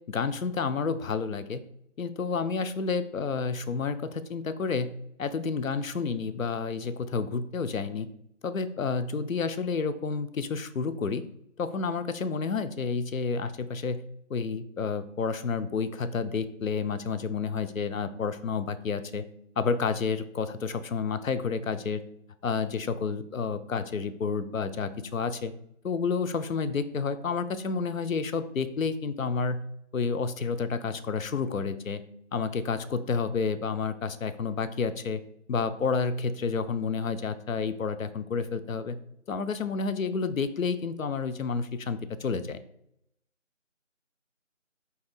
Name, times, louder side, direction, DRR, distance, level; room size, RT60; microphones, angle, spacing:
voice 1, 0.1-1.6 2.0-4.9 5.2-8.1 8.4-11.2 11.6-14.0 14.3-19.2 19.6-22.0 22.4-25.5 25.8-29.6 29.9-32.0 32.3-35.2 35.5-39.0 39.3-42.6, left 5 dB, 85° left, 11 dB, 0.5 m, -30 dB
4.0 x 2.9 x 3.8 m, 0.77 s
figure-of-eight pair, 170°, 39 cm